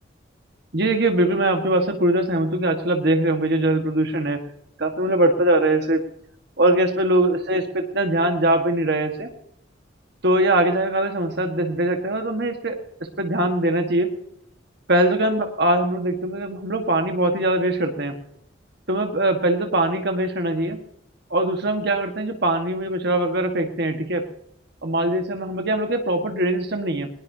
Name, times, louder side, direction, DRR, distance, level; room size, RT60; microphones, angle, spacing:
voice 1, 0.7-4.4 4.8-6.0 6.6-9.3 10.2-12.8 13.2-14.1 14.9-18.2 18.9-20.8 21.3-24.3 24.8-27.1, right 1 dB, 60° right, 4 dB, 1.6 m, -22 dB
20.5 x 20.5 x 2.8 m, 0.73 s
head